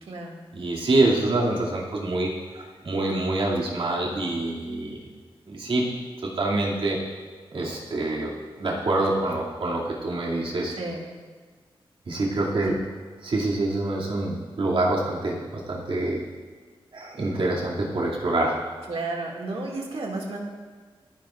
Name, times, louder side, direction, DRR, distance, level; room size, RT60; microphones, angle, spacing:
voice 1, 0.0-0.4 10.7-11.1 12.6-12.7 18.9-20.4, right 3 dB, 90° right, -1 dB, 2.3 m, -32 dB
voice 2, 0.5-2.3 2.8-5.0 5.5-5.9 6.2-7.0 7.5-8.3 8.6-10.8 12.1-12.8 13.2-16.2 16.9-18.6, right 2 dB, 65° right, -4 dB, 2.6 m, -25 dB
28.5 x 10.0 x 2.5 m, 1.5 s
wide cardioid pair, 165°, 10 cm